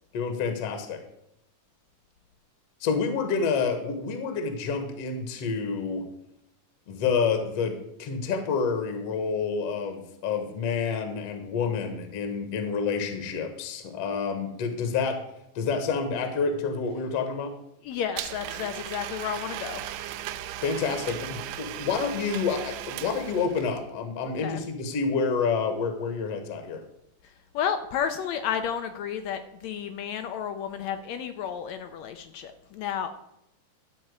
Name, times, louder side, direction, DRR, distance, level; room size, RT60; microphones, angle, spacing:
voice 1, 0.1-1.0 2.8-6.0 6.9-7.7 8.0-15.2 15.6-17.5 20.6-26.8, left 5 dB, 60° left, 6 dB, 1.8 m, -28 dB
voice 2, 17.8-20.2 24.3-24.6 27.5-33.1, left 8 dB, 75° left, 8 dB, 1.6 m, -32 dB
Domestic sounds home sounds, 18.2-23.8, right 13 dB, 85° right, 2.2 m, -37 dB
12.5 x 4.3 x 8.1 m, 0.80 s
omnidirectional pair, 3.8 m